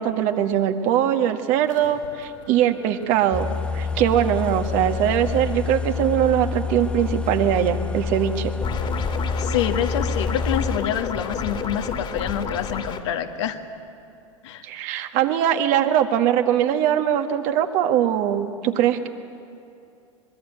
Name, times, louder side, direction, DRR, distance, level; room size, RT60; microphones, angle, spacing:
voice 1, 0.0-3.5 3.7-8.5 14.6-19.1, right 10 dB, 50° right, 7 dB, 1.7 m, -21 dB
sound 1, 1.6-12.9, left 8 dB, 85° left, 7.2 m, -44 dB
sound 2, 3.3-10.8, left 5 dB, 5° left, 0.9 m, -28 dB
sound 3, 8.6-13.0, left 5 dB, 30° left, 2.4 m, -30 dB
voice 2, 9.4-13.6 14.4-14.6, left 10 dB, 60° left, 6 dB, 1.7 m, -27 dB
24.5 x 22.0 x 9.2 m, 2.6 s
figure-of-eight pair, 85°, 17 cm